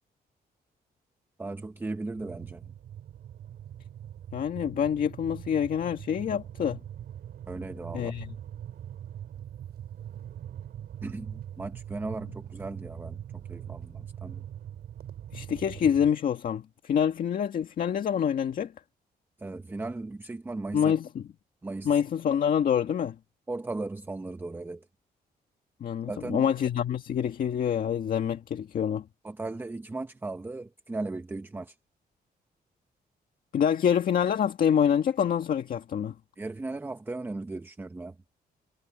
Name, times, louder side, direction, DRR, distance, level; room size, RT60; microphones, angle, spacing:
voice 1, 1.4-2.6 7.5-8.1 11.0-14.4 19.4-20.9 21.6-22.0 23.5-24.9 26.1-26.5 29.2-31.8 36.4-38.2, right 2 dB, 10° right, 0.7 m, -37 dB
sound 1, 2.2-16.1, right 10 dB, 75° right, 6.8 m, -42 dB
voice 2, 4.3-6.8 7.9-8.3 15.3-18.7 20.7-21.2 21.8-23.2 25.8-29.0 33.5-36.1, left 8 dB, 60° left, 1.9 m, -26 dB
cardioid pair, 150°, 17 cm